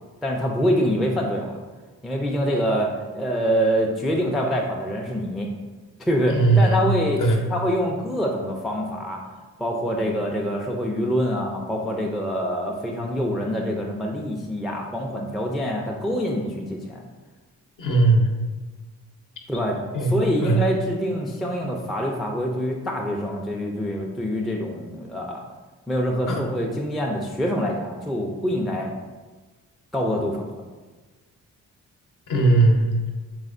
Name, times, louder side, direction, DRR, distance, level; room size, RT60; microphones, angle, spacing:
voice 1, 0.2-1.6 2.0-5.5 6.0-7.2 7.5-17.0 19.5-25.4 25.9-28.9 29.9-30.6, equal, ahead, 0 dB, 0.4 m, -25 dB
voice 2, 6.3-6.8 7.2-7.4 17.8-18.3 19.9-20.1 20.4-20.6 26.2-26.4 32.3-33.1, right 2 dB, 50° left, 1 dB, 0.8 m, -18 dB
3.4 x 3.2 x 2.5 m, 1.3 s
hypercardioid pair, 40°, 41 cm